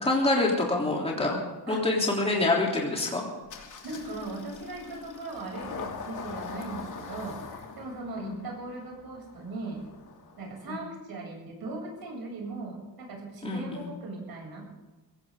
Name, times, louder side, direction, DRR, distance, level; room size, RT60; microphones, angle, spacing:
voice 1, 0.0-1.4 1.7-3.3 8.2-8.4 10.7-10.8 13.4-13.9, left 2 dB, 15° left, -2 dB, 3.4 m, -26 dB
Engine starting, 3.5-10.8, left 5 dB, 50° left, 3.0 m, -42 dB
voice 2, 3.8-9.8 10.4-14.7, right 3 dB, 65° right, 0 dB, 7.6 m, -39 dB
22.0 x 17.0 x 3.9 m, 1.2 s
wide cardioid pair, 165°, 40 cm